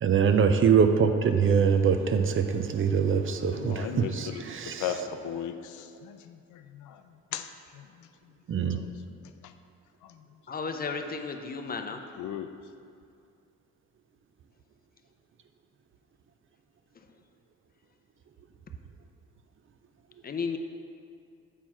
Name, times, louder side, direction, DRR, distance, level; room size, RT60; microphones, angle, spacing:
voice 1, 0.0-4.8 8.5-8.8, right 6 dB, 45° right, 7 dB, 0.5 m, -23 dB
voice 2, 3.5-9.5 10.0-10.3 12.2-12.5, left 10 dB, 80° left, 8 dB, 0.5 m, -39 dB
voice 3, 10.5-12.0 20.2-20.6, left 5 dB, 30° left, 6 dB, 0.6 m, -33 dB
7.3 x 4.5 x 4.5 m, 2.4 s
cardioid pair, 90°, 30 cm